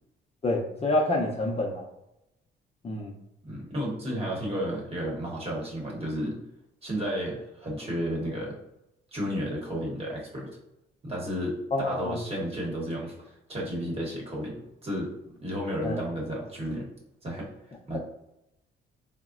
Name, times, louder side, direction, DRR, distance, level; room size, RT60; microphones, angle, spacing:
voice 1, 0.4-1.9 2.8-3.1 11.7-12.2 15.8-16.0, left 1 dB, 30° left, -1 dB, 0.5 m, -27 dB
voice 2, 3.4-6.4 6.8-8.6 9.1-10.5 11.0-15.1 15.4-16.9 17.2-17.5 17.9-18.0, equal, 30° right, -3 dB, 1.0 m, -32 dB
3.5 x 2.0 x 2.4 m, 0.87 s
cardioid pair, 90°, 20 cm